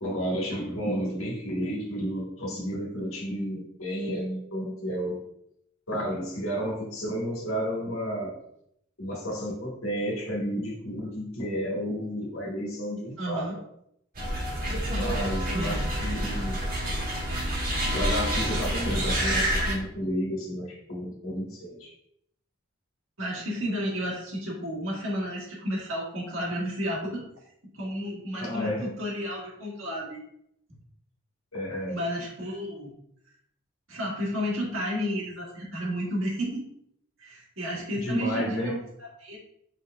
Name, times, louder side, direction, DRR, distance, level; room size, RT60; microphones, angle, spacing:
voice 1, 0.0-5.2 5.9-8.4 9.0-13.5 14.9-16.6 17.9-21.9 28.4-28.9 31.5-32.0 37.9-38.8, equal, 75° left, -2 dB, 1.4 m, -31 dB
voice 2, 13.2-13.5 15.5-15.9 23.2-27.2 27.7-30.2 31.9-32.9 33.9-36.6 37.2-38.8 39.2-39.4, equal, 70° right, -3 dB, 1.7 m, -32 dB
sound 1, 14.1-19.7, equal, 45° right, 1.4 m, -28 dB
5.7 x 3.8 x 2.4 m, 0.74 s
head